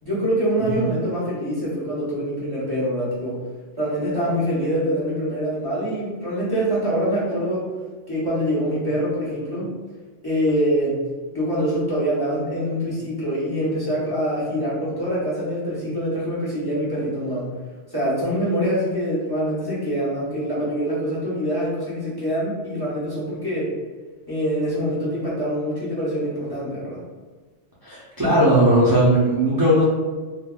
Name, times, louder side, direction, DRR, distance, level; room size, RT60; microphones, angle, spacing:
voice 1, 0.0-3.4 3.8-7.6 8.1-9.7 10.2-11.0 11.3-17.5 17.9-23.7 24.3-27.0, equal, 20° left, -8 dB, 0.9 m, -24 dB
voice 2, 27.8-29.8, right 1 dB, 35° right, -9 dB, 0.3 m, -17 dB
3.4 x 2.2 x 2.2 m, 1.4 s
omnidirectional pair, 1.3 m